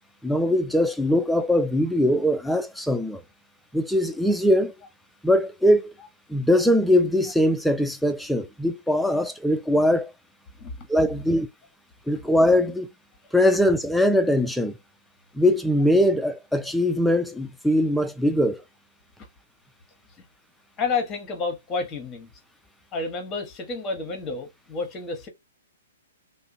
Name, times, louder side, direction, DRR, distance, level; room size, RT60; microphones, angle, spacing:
voice 1, 0.2-3.2 3.7-4.7 5.2-5.9 6.3-10.1 10.9-11.5 12.1-12.9 13.3-14.8 15.3-18.6, left 1 dB, ahead, 0.3 m, -21 dB
voice 2, 20.8-22.3 22.9-25.3, left 4 dB, 20° left, 0.9 m, -30 dB
2.7 x 2.1 x 2.5 m
figure-of-eight pair, 120°, 0 cm